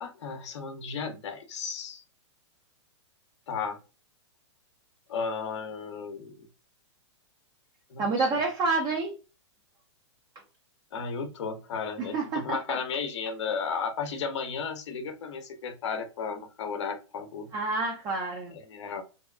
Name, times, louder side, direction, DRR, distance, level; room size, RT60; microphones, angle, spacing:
voice 1, 0.0-2.0 3.5-3.8 5.1-6.5 7.9-8.3 10.9-17.5 18.5-19.0, left 5 dB, 70° left, 7 dB, 0.7 m, -34 dB
voice 2, 8.0-9.1 12.0-12.8 17.5-18.5, right 3 dB, 25° right, 0 dB, 0.5 m, -28 dB
2.8 x 2.2 x 2.2 m, 0.31 s
hypercardioid pair, 125°, 15 cm